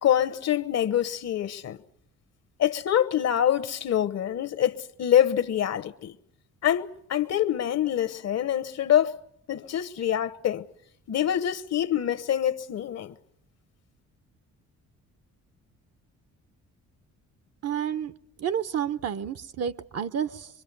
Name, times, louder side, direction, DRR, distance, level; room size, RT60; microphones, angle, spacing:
voice 1, 0.0-1.8 2.6-6.1 6.6-9.2 9.5-10.6 11.1-13.1, left 10 dB, 60° left, 1.0 m, -25 dB
voice 2, 17.6-18.1 18.4-20.5, right 8 dB, 55° right, 0.9 m, -30 dB
24.5 x 24.5 x 6.8 m
cardioid pair, 90°, 30 cm